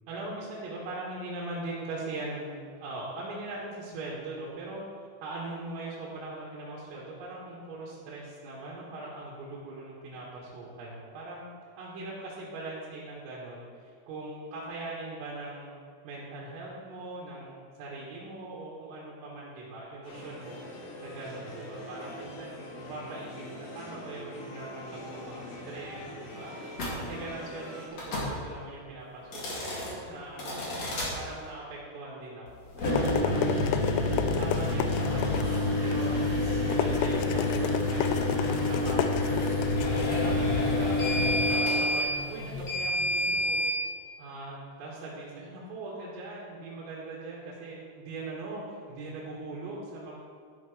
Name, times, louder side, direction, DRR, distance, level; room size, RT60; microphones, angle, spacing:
voice 1, 0.1-4.8 5.2-11.5 11.8-15.7 16.0-20.6 21.0-22.6 22.9-23.4 23.8-26.6 26.9-32.5 32.8-33.4 34.4-39.5 40.1-41.0 41.5-43.6 44.2-50.2, right 2 dB, 85° right, -7 dB, 4.4 m, -41 dB
sound 1, 20.0-27.9, left 1 dB, 65° left, 3.7 m, -43 dB
sound 2, 26.7-27.0 27.9-28.3 29.2-29.9 30.4-31.1 32.7-43.7, left 2 dB, 45° left, 2.5 m, -28 dB
sound 3, 32.5-41.3, left 8 dB, 85° left, 3.2 m, -33 dB
12.0 x 11.5 x 3.2 m, 2.2 s
omnidirectional pair, 5.8 m